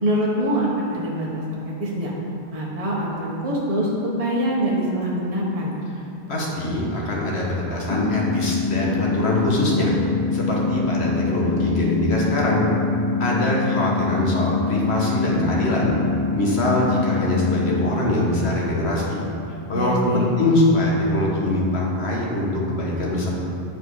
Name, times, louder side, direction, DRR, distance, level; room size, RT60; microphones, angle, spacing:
voice 1, 0.0-2.1 2.5-3.9 4.2-5.8 19.7-20.2, right 1 dB, 35° right, -4 dB, 1.2 m, -24 dB
voice 2, 6.3-9.9 10.3-12.6 13.2-15.9 16.3-19.2 19.7-23.3, left 1 dB, 80° left, -3 dB, 1.7 m, -23 dB
sound 1, 7.9-17.9, left 4 dB, 35° left, 0.4 m, -24 dB
9.1 x 5.0 x 4.8 m, 2.6 s
omnidirectional pair, 1.1 m